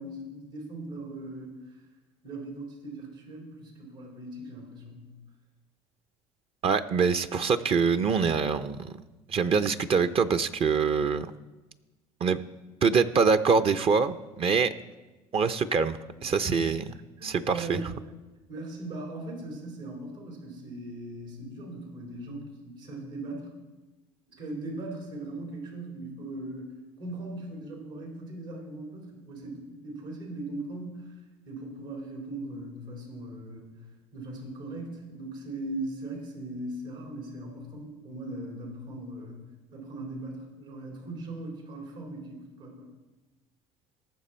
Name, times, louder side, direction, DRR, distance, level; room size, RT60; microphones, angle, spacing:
voice 1, 0.0-1.5 2.2-5.1 16.2-16.7 17.2-17.8 18.5-23.5 24.4-26.7 27.0-31.2 31.4-33.7 34.1-39.4 39.7-42.9, right 2 dB, 80° right, -1 dB, 4.2 m, -39 dB
voice 2, 6.6-9.0 9.3-11.3 12.2-12.4 12.8-14.7 15.3-16.8 17.2-17.8, right 5 dB, 40° right, 11 dB, 0.6 m, -24 dB
18.5 x 6.7 x 4.4 m, 1.1 s
supercardioid pair, 80°, 14 cm